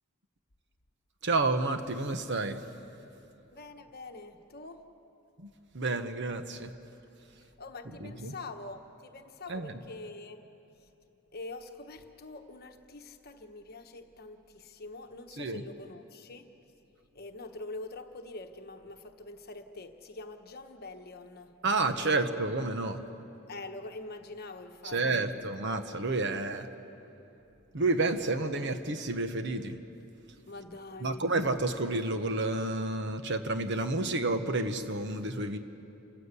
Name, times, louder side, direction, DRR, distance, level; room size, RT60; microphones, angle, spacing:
voice 1, 1.2-2.6 5.4-6.7 8.0-8.3 9.5-9.7 15.4-15.6 21.6-23.0 24.9-26.7 27.7-29.8 31.0-35.6, right 2 dB, 55° right, 8 dB, 1.1 m, -30 dB
voice 2, 3.5-4.8 7.4-10.4 10.8-10.9 11.3-16.5 17.1-21.6 21.9-22.2 23.5-25.4 26.3-26.5 30.5-31.3, left 2 dB, 45° left, 6 dB, 1.2 m, -45 dB
28.5 x 15.0 x 8.3 m, 2.8 s
head